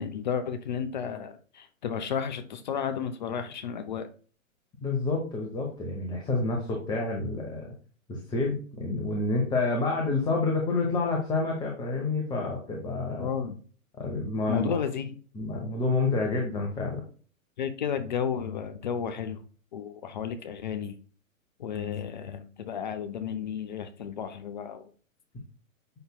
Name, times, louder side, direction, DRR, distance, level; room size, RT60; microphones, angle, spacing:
voice 1, 0.0-4.1 13.2-13.6 14.5-15.2 17.6-19.4 19.7-21.0 21.6-24.8, left 7 dB, 35° left, 9 dB, 0.6 m, -32 dB
voice 2, 4.8-7.7 8.1-13.3 14.0-14.8 15.3-17.0, left 3 dB, 10° left, 0 dB, 0.9 m, -28 dB
7.8 x 5.6 x 2.2 m, 0.41 s
figure-of-eight pair, 115°, 42 cm